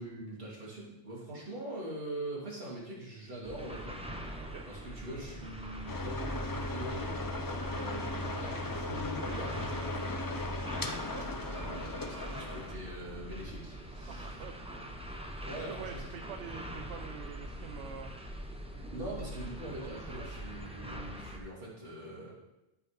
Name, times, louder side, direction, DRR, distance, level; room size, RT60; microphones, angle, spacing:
voice 1, 0.0-4.0 4.7-7.2 7.7-10.6 11.3-14.3 15.4-16.1 18.9-22.3, right 1 dB, 50° right, -5 dB, 2.6 m, -43 dB
sound 1, 3.4-21.4, equal, 5° right, 0.6 m, -43 dB
sound 2, 5.9-12.7, left 2 dB, 35° left, 0.3 m, -37 dB
voice 2, 14.1-14.9 15.6-18.1 19.7-20.2, right 8 dB, 75° right, 6 dB, 0.9 m, -46 dB
13.0 x 5.8 x 3.4 m, 0.97 s
omnidirectional pair, 1.2 m